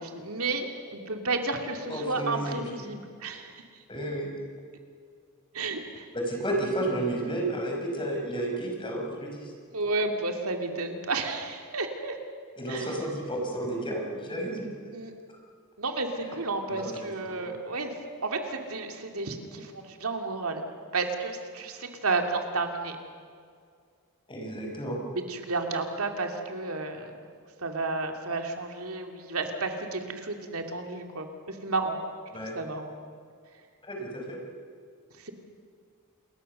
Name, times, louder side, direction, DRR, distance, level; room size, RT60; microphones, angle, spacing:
voice 1, 0.0-3.5 5.5-6.1 9.7-12.2 12.7-12.9 14.9-15.1 15.8-20.6 20.9-22.9 25.1-27.1 27.6-32.0 32.5-32.9 35.2-35.3, right 3 dB, 70° right, 4 dB, 2.7 m, -32 dB
voice 2, 1.9-2.6 3.9-4.3 6.1-9.5 12.6-14.7 16.7-16.9 17.3-17.5 24.3-25.0 32.3-32.6 33.8-34.4, right 1 dB, 20° left, 0 dB, 5.3 m, -32 dB
28.5 x 21.5 x 6.8 m, 2.1 s
head